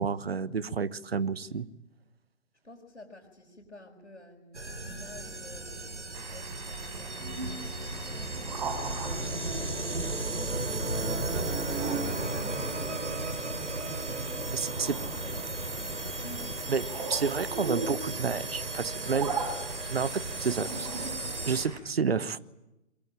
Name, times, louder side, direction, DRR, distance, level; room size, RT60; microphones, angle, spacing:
voice 1, 0.0-1.7 14.5-15.0 16.7-19.3 19.9-20.9 21.5-22.4, right 5 dB, 55° right, 18 dB, 1.2 m, -30 dB
voice 2, 2.6-16.6, left 1 dB, 80° left, -2 dB, 5.1 m, -52 dB
sound 1, 4.5-21.7, right 2 dB, 75° right, 4.1 m, -35 dB
sound 2, 6.1-21.8, right 4 dB, 35° right, 4.7 m, -40 dB
24.0 x 23.5 x 8.9 m, 0.95 s
figure-of-eight pair, 135°, 36 cm